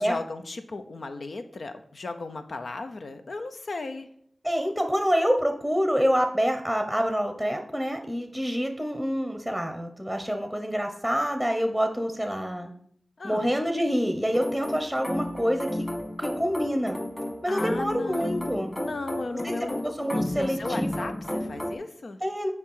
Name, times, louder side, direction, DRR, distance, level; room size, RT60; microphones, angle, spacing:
voice 1, 0.0-4.1 13.2-13.5 17.5-22.2, left 3 dB, 75° left, 8 dB, 0.8 m, -35 dB
voice 2, 4.4-12.7 13.2-15.8 16.2-17.0 17.4-18.7 19.4-19.5 19.8-21.1 22.2-22.5, equal, 5° left, 5 dB, 1.0 m, -27 dB
sound 1, 14.3-21.7, left 1 dB, 20° left, 2.1 m, -33 dB
7.2 x 4.8 x 5.6 m, 0.65 s
cardioid pair, 55°, 0 cm